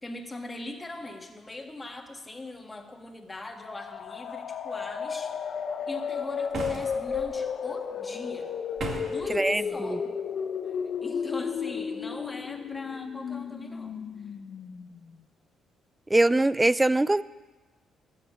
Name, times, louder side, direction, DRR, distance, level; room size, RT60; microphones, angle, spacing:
voice 1, 0.0-5.4 5.9-8.5 9.0-10.2 10.6-10.7 11.0-14.0, left 2 dB, 20° left, 3 dB, 1.7 m, -40 dB
sound 1, 3.5-15.1, left 6 dB, 55° left, 0.8 m, -33 dB
sound 2, 6.5-7.2 8.8-9.3, right 3 dB, 55° right, 2.3 m, -35 dB
voice 2, 9.3-9.9 16.1-17.2, right 2 dB, 15° right, 18 dB, 0.4 m, -22 dB
13.0 x 6.8 x 8.4 m, 1.2 s
cardioid pair, 90°, 0 cm